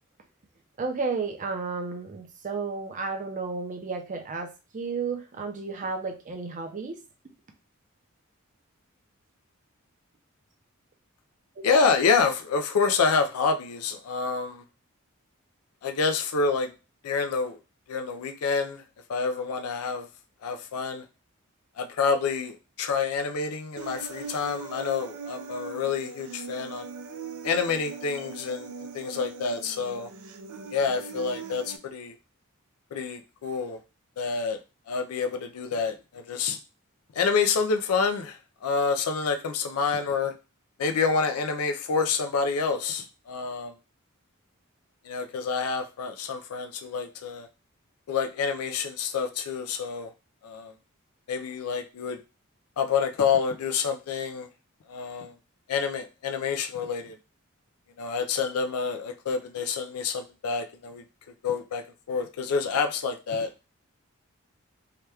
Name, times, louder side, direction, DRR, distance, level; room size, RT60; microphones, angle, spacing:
voice 1, 0.8-7.0 11.6-11.7, right 4 dB, 35° right, 5 dB, 0.5 m, -32 dB
voice 2, 11.6-14.6 15.8-16.7 17.0-17.6 17.9-18.8 19.1-20.1 20.4-21.0 21.8-26.9 27.4-30.1 30.7-32.2 32.9-33.8 34.2-34.6 34.9-36.6 37.2-40.3 40.8-43.7 45.0-47.5 48.1-50.1 50.4-50.7 51.3-52.2 52.8-54.5 54.9-55.3 55.7-57.2 58.0-61.0 61.4-61.8 62.1-63.5, left 5 dB, 90° left, 6 dB, 0.4 m, -28 dB
Human voice, 23.8-31.8, right 5 dB, 90° right, 0.4 m, -41 dB
2.8 x 2.2 x 3.3 m, 0.30 s
head